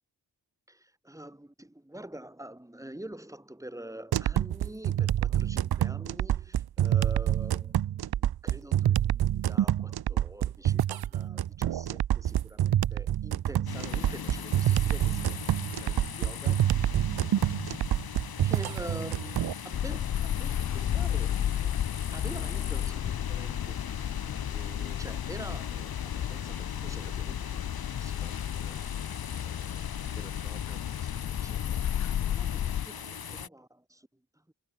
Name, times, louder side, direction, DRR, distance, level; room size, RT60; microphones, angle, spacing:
voice 1, 0.7-16.7 18.1-21.8 22.1-28.8 29.4-31.8 32.3-34.1 34.5-34.6, right 1 dB, 10° right, 6.9 m, -47 dB
sound 1, 4.1-19.5, right 11 dB, 80° right, 0.7 m, -27 dB
sound 2, 13.7-33.5, left 7 dB, 75° left, 3.5 m, -40 dB
sound 3, 19.7-32.9, left 10 dB, 50° left, 0.4 m, -32 dB
wide cardioid pair, 115°, 37 cm